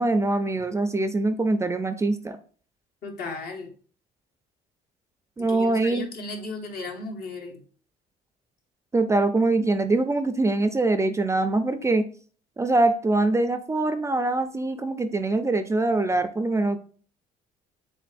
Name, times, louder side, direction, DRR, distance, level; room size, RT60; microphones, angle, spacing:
voice 1, 0.0-2.4 5.4-6.1 8.9-12.0 12.6-16.8, right 2 dB, 15° right, 10 dB, 0.3 m, -23 dB
voice 2, 3.0-3.7 5.5-7.6, left 3 dB, 65° left, 1 dB, 1.2 m, -35 dB
7.4 x 2.5 x 2.5 m, 0.43 s
cardioid pair, 110°, 17 cm